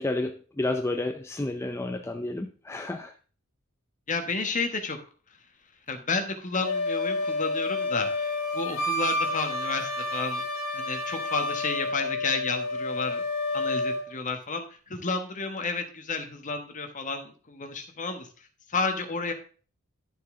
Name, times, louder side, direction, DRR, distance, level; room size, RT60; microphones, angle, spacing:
voice 1, 0.0-3.1, left 2 dB, 10° left, 0.5 m, -31 dB
voice 2, 4.1-5.0 5.9-10.4 10.7-13.2 13.5-18.3 18.7-19.3, left 4 dB, 35° left, 1.4 m, -31 dB
Wind instrument woodwind instrument, 6.6-14.0, left 2 dB, 70° left, 2.5 m, -29 dB
11.5 x 6.8 x 3.8 m
head